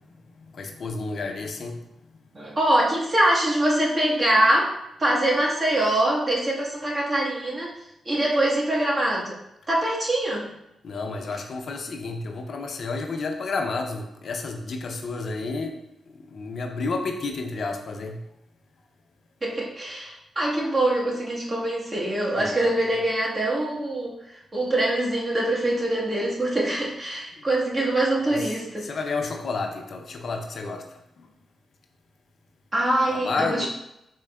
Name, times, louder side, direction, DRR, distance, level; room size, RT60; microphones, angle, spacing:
voice 1, 0.0-1.8 10.8-18.2 22.3-22.8 27.3-27.5 28.3-28.5 28.8-31.3 33.1-33.7, left 3 dB, 60° left, 3 dB, 0.5 m, -31 dB
voice 2, 2.3-4.7 5.0-7.7 8.0-9.4 9.7-10.5 19.4-24.2 24.5-28.9 32.7-33.7, right 1 dB, 40° right, -4 dB, 1.2 m, -23 dB
4.3 x 2.9 x 2.3 m, 0.83 s
supercardioid pair, 45°, 0 cm